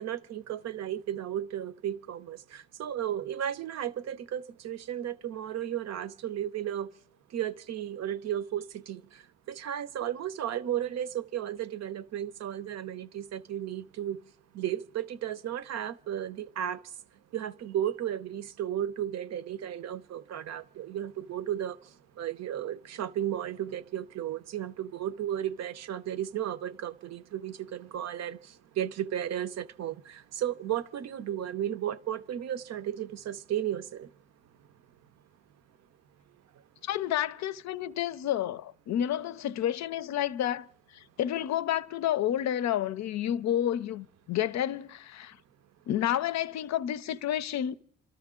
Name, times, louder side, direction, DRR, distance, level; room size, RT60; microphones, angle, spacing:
voice 1, 0.0-6.9 7.3-9.0 9.5-14.2 14.5-16.8 17.3-21.8 22.2-28.4 28.8-34.1, right 10 dB, 60° right, 0.6 m, -34 dB
voice 2, 36.8-40.7 41.2-45.4 45.9-47.7, left 11 dB, 65° left, 0.5 m, -30 dB
29.0 x 13.0 x 3.7 m
cardioid pair, 90°, 30 cm